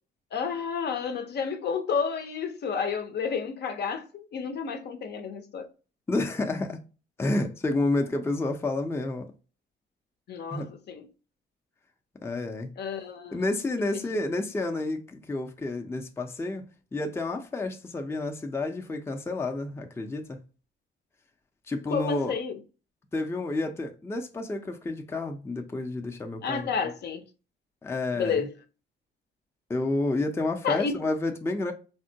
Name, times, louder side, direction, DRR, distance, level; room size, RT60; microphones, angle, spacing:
voice 1, 0.3-5.7 10.3-11.1 12.8-13.5 13.9-14.0 21.9-22.6 26.4-27.2 28.1-28.5 30.6-30.9, left 6 dB, 55° left, 0.6 m, -31 dB
voice 2, 6.1-6.8 7.2-9.3 10.5-10.7 12.2-12.7 13.3-16.7 16.9-20.4 21.7-22.3 23.1-26.7 27.8-28.5 29.7-31.7, left 2 dB, 15° left, 0.4 m, -30 dB
3.5 x 2.1 x 2.7 m
cardioid pair, 90°, 20 cm